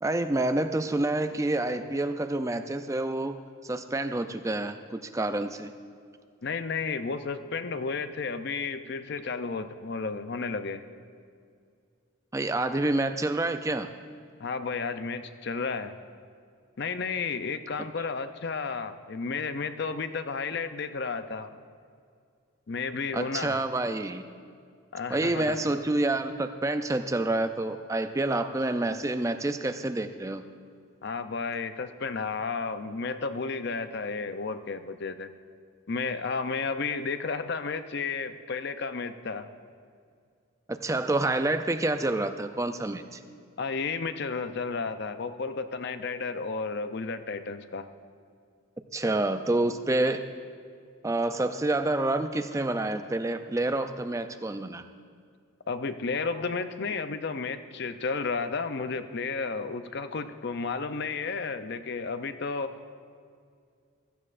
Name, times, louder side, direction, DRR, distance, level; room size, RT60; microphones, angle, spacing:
voice 1, 0.0-3.3 3.6-5.7 12.3-13.9 23.1-24.2 25.1-30.5 40.7-43.2 48.9-50.2 51.0-54.8, right 2 dB, 15° right, 9 dB, 0.4 m, -28 dB
voice 2, 6.4-10.8 14.4-15.9 16.8-21.6 22.7-23.6 24.9-25.6 31.0-35.3 35.9-39.5 43.6-47.9 55.7-62.8, left 4 dB, 50° left, 10 dB, 0.5 m, -32 dB
16.0 x 14.5 x 2.5 m, 2.2 s
head